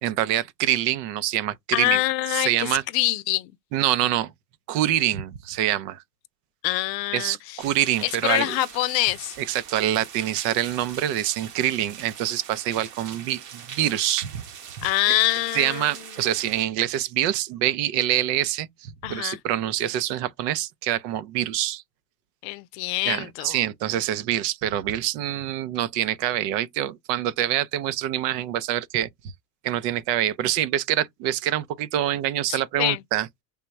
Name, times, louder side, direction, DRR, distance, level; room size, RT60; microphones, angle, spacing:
voice 1, 0.0-2.0 2.3-2.8 3.7-4.3 4.7-6.0 7.1-8.5 9.4-14.4 15.1-15.2 15.5-21.8 23.0-29.3 29.6-33.3, right 12 dB, 75° right, 0.6 m, -25 dB
voice 2, 1.7-3.5 6.6-7.4 8.0-9.4 14.8-15.9 19.0-19.4 22.4-23.6 32.5-33.0, left 17 dB, 80° left, 0.6 m, -25 dB
sound 1, 7.6-16.6, right 8 dB, 40° right, 0.8 m, -42 dB
3.4 x 2.2 x 4.0 m
supercardioid pair, 110°, 49 cm